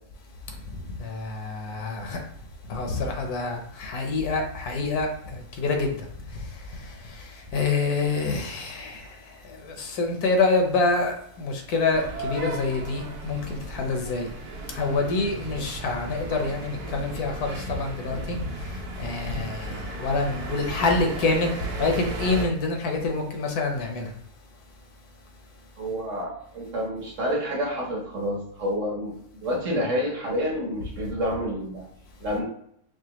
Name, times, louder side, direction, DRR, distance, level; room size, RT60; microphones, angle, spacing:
voice 1, 1.0-2.2 2.7-6.0 7.5-9.1 9.5-14.3 14.7-18.4 19.0-21.5 21.8-24.1, left 3 dB, 80° left, 1.2 m, -26 dB
sound 1, 11.9-22.5, right 2 dB, 80° right, 1.2 m, -36 dB
voice 2, 25.8-31.9 32.2-32.4, equal, 55° right, 1.3 m, -29 dB
4.9 x 2.2 x 2.9 m
omnidirectional pair, 1.6 m